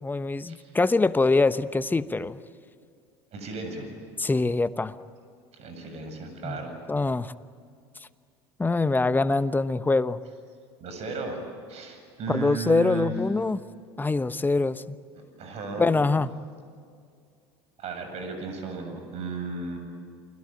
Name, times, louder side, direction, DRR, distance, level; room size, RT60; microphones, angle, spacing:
voice 1, 0.0-2.4 4.2-4.9 6.4-6.6 6.9-7.3 8.6-10.2 12.3-13.6 14.0-15.0 15.8-16.3, left 3 dB, 15° left, 13 dB, 1.0 m, -24 dB
voice 2, 3.3-3.9 5.6-6.8 10.8-11.4 11.7-13.1 15.2-16.0 17.8-19.8, right 4 dB, 50° right, 6 dB, 7.8 m, -35 dB
29.5 x 21.5 x 9.2 m, 2.3 s
hypercardioid pair, 75°, 14 cm